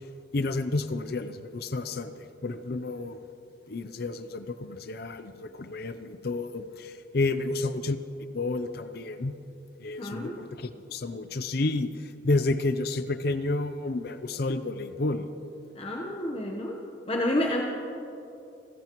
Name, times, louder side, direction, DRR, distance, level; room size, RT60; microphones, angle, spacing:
voice 1, 0.3-2.1 2.4-3.2 3.7-6.7 7.1-8.0 8.3-9.3 9.8-10.5 10.9-11.9 12.2-15.2, left 2 dB, 50° left, 11 dB, 0.5 m, -30 dB
voice 2, 10.0-10.4 15.7-16.8 17.1-17.6, left 1 dB, 30° left, 0 dB, 1.0 m, -29 dB
27.5 x 15.0 x 3.0 m, 2.8 s
head